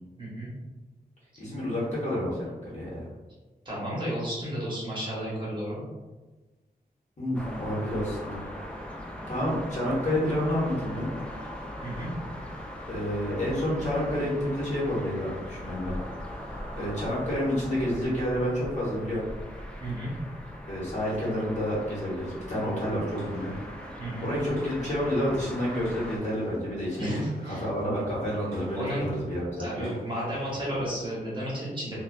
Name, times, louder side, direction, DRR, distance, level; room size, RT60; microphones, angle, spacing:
voice 1, 0.2-0.5 3.6-5.8 11.8-12.1 19.8-20.1 24.0-24.3 27.0-27.6 28.7-29.1 29.6-32.0, equal, 30° right, -7 dB, 1.0 m, -33 dB
voice 2, 1.4-3.1 7.2-8.4 9.2-11.1 12.9-15.9 16.8-19.2 20.6-23.5 24.2-29.9, equal, 45° left, -7 dB, 1.0 m, -29 dB
sound 1, 7.3-26.2, equal, 5° left, 0.3 m, -40 dB
sound 2, 23.0-31.2, right 1 dB, 75° right, 0.7 m, -47 dB
2.4 x 2.3 x 2.2 m, 1.2 s
wide cardioid pair, 95°, 16 cm